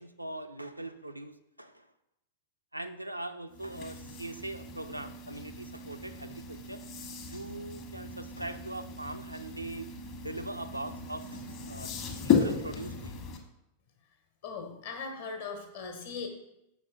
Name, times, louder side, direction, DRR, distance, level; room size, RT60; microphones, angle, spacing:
voice 1, 0.0-1.9 2.7-6.8 7.3-9.9 10.2-11.9 12.2-13.3, right 1 dB, 85° right, 8 dB, 0.4 m, -41 dB
sound 1, 3.5-13.4, left 6 dB, 40° left, 1.0 m, -35 dB
voice 2, 14.4-16.3, left 5 dB, 60° left, 4 dB, 1.2 m, -39 dB
6.3 x 5.1 x 3.7 m, 0.88 s
figure-of-eight pair, 90°, 0 cm